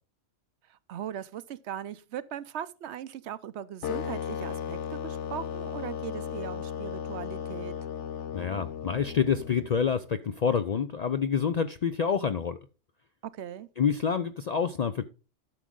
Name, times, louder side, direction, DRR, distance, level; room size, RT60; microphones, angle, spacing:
voice 1, 0.7-7.7 13.2-13.7, right 10 dB, 70° right, 0.9 m, -39 dB
sound 1, 3.8-9.9, left 8 dB, 75° left, 1.1 m, -36 dB
voice 2, 8.3-12.6 13.8-15.1, left 7 dB, 60° left, 0.4 m, -27 dB
12.0 x 6.2 x 3.7 m
omnidirectional pair, 1.2 m